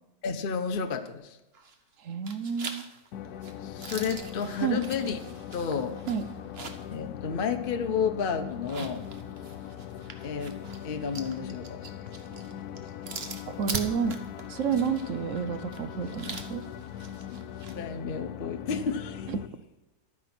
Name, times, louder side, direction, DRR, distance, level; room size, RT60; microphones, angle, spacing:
voice 1, 0.2-1.4 3.6-5.2 5.5-6.0 6.9-9.1 10.2-10.6 10.8-11.8 17.7-19.3, left 6 dB, 40° left, 7 dB, 0.9 m, -31 dB
sound 1, 1.5-1.9 2.3-7.0 7.3-7.4 8.5-17.8, right 4 dB, 40° right, 1.2 m, -42 dB
voice 2, 2.0-2.9 4.6-4.8 6.1-6.2 13.5-14.2 14.5-16.7 19.3-19.4, right 6 dB, 60° right, 11 dB, 0.9 m, -30 dB
sound 2, 3.1-19.5, left 9 dB, 70° left, 1.1 m, -41 dB
12.0 x 9.2 x 5.9 m, 0.96 s
omnidirectional pair, 1.8 m